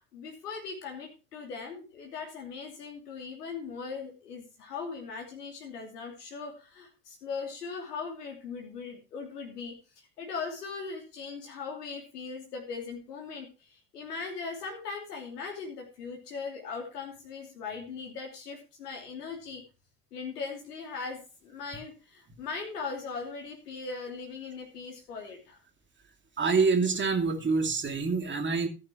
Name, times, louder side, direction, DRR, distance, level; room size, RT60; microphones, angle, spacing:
voice 1, 0.0-19.6 20.1-25.6, left 5 dB, 75° left, 1 dB, 3.0 m, -39 dB
voice 2, 26.4-28.7, right 4 dB, 25° right, 7 dB, 2.6 m, -26 dB
14.0 x 11.0 x 3.0 m, 0.32 s
figure-of-eight pair, 70°, 47 cm